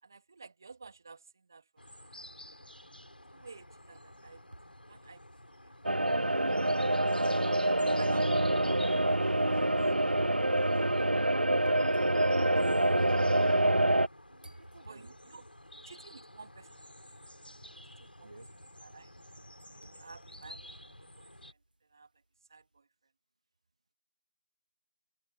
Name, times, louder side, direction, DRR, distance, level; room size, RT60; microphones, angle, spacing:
voice 1, 0.0-1.6 3.3-4.4 4.9-5.7 8.0-8.3 12.7-13.1 14.8-15.4 15.8-17.4 17.6-18.3 18.8-19.1 19.8-21.6 21.9-22.1 22.5-22.9, right 4 dB, 20° right, 3.1 m, -53 dB
sound 1, 1.8-21.5, left 1 dB, 70° left, 6.4 m, -51 dB
sound 2, 3.9-4.8 5.4-5.5 6.4-6.5 8.4-14.1 14.4-15.4 16.6-16.7 17.2-17.6 18.0-18.8 19.2-21.5, right 1 dB, 60° right, 1.1 m, -50 dB
sound 3, 5.8-14.1, right 1 dB, 75° right, 0.6 m, -26 dB
voice 2, 6.3-7.2 7.5-8.6 8.9-9.7 10.0-10.7 14.3-15.2 18.2-18.5, right 2 dB, 40° right, 2.2 m, -54 dB
open air
figure-of-eight pair, 170°, 5 cm